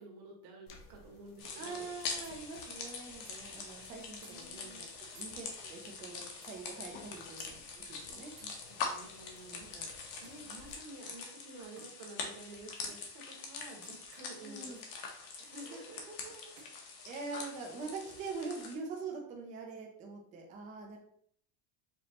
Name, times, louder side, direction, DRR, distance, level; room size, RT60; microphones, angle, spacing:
voice 1, 0.0-1.9 4.3-4.9 8.4-8.6 8.9-14.8 15.3-16.0, right 2 dB, 50° right, -1 dB, 1.3 m, -51 dB
sound 1, 0.7-10.7, left 4 dB, 40° left, 0.6 m, -59 dB
sound 2, 1.4-18.8, left 4 dB, 60° left, 1.0 m, -44 dB
voice 2, 1.6-8.3 14.4-14.8 15.6-15.8 16.1-16.6 17.0-21.0, right 4 dB, 20° right, 1 dB, 0.3 m, -44 dB
sound 3, 2.2-2.4 3.2-3.4 4.2-4.3 5.1-5.3 6.4-6.5 7.4-7.5 8.4-8.5 10.2-10.5 11.8-12.0 12.9-13.1 13.8-14.0 15.6-15.8 16.6-16.8, right 6 dB, 85° right, 1.1 m, -58 dB
5.1 x 2.9 x 2.8 m, 0.63 s
cardioid pair, 165°, 50 cm